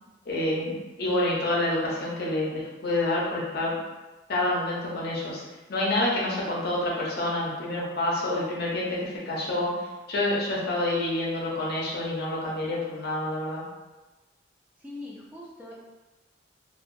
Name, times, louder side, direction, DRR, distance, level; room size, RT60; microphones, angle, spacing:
voice 1, 0.3-3.8 4.3-5.4 5.7-13.6, left 1 dB, 60° left, -4 dB, 0.7 m, -28 dB
voice 2, 14.8-15.7, left 2 dB, 10° right, -7 dB, 0.5 m, -41 dB
2.7 x 2.3 x 2.6 m, 1.1 s
head